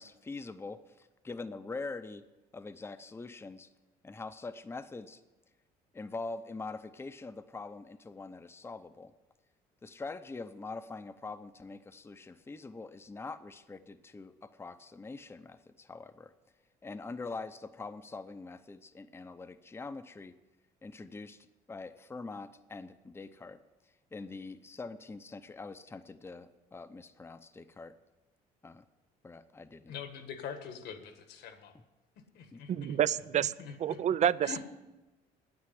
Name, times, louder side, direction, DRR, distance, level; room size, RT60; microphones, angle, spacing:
voice 1, 0.0-2.2 2.5-3.7 4.0-5.2 5.9-9.1 9.8-16.3 16.8-20.4 20.8-23.6 24.1-28.0 28.6-28.8 29.2-29.9 32.5-32.6, left 3 dB, 15° left, 11 dB, 0.6 m, -44 dB
voice 2, 29.9-31.7 32.3-33.0 33.3-34.0 34.4-34.6, left 7 dB, 75° left, 8 dB, 1.6 m, -44 dB
voice 3, 32.7-33.5 33.8-34.6, right 10 dB, 45° right, 18 dB, 0.4 m, -28 dB
9.7 x 8.7 x 10.0 m, 1.1 s
cardioid pair, 110°, 17 cm